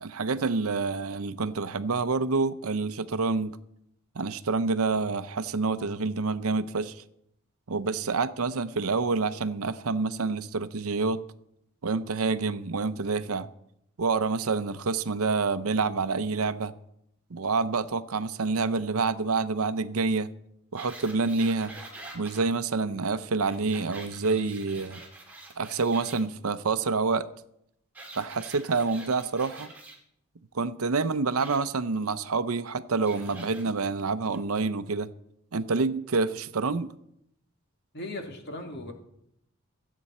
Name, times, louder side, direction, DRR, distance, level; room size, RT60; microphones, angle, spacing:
voice 1, 0.0-3.6 4.2-7.0 7.7-11.2 11.8-13.5 14.0-16.7 17.3-20.3 20.7-21.8 22.1-25.0 25.6-27.3 28.2-29.7 30.5-35.1 35.5-36.9, right 4 dB, 75° right, 0.6 m, -27 dB
sound 1, 20.8-22.5 23.5-26.2 27.9-30.0 31.3-31.6 33.0-33.6 34.3-34.4, right 2 dB, 5° right, 2.4 m, -46 dB
voice 2, 37.9-38.9, left 1 dB, 50° left, 2.1 m, -37 dB
24.0 x 8.4 x 4.3 m
head